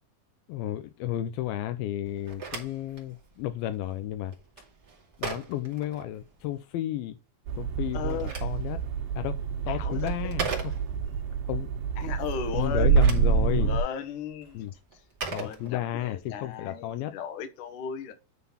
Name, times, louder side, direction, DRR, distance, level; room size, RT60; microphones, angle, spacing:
voice 1, 0.5-4.3 5.2-7.2 7.6-8.8 9.2-9.4 9.7-10.7 11.5-11.7 12.5-13.7 14.5-14.7 15.3-17.1, left 12 dB, 80° left, 2.5 m, -32 dB
Telephone, 2.1-6.6 7.8-11.2 12.7-16.2, right 4 dB, 30° right, 2.2 m, -40 dB
sound 1, 7.5-13.8, right 6 dB, 90° right, 3.3 m, -27 dB
voice 2, 7.9-8.3 9.7-10.4 12.0-13.1 13.5-14.7 15.4-18.1, left 7 dB, 65° left, 2.5 m, -36 dB
9.4 x 4.0 x 5.6 m
omnidirectional pair, 4.3 m